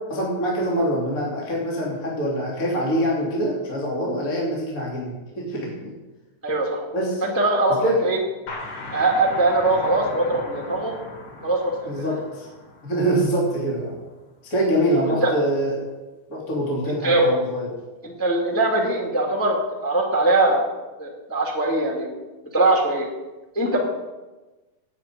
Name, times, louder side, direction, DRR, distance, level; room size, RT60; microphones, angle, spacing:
voice 1, 0.0-5.9 6.9-7.2 7.7-8.0 11.8-12.5 12.8-14.0 14.4-15.8 16.3-17.7, right 1 dB, 25° left, -4 dB, 2.8 m, -24 dB
voice 2, 6.4-6.8 7.2-8.2 8.9-10.9 11.4-11.6 11.9-12.0 15.2-15.3 17.0-17.3 18.0-20.6 21.0-22.1 22.5-23.1 23.5-23.8, right 2 dB, 10° left, 0 dB, 0.9 m, -21 dB
sound 1, 8.5-13.9, left 2 dB, 75° left, 4.8 m, -38 dB
9.8 x 8.6 x 8.9 m, 1.2 s
omnidirectional pair, 4.5 m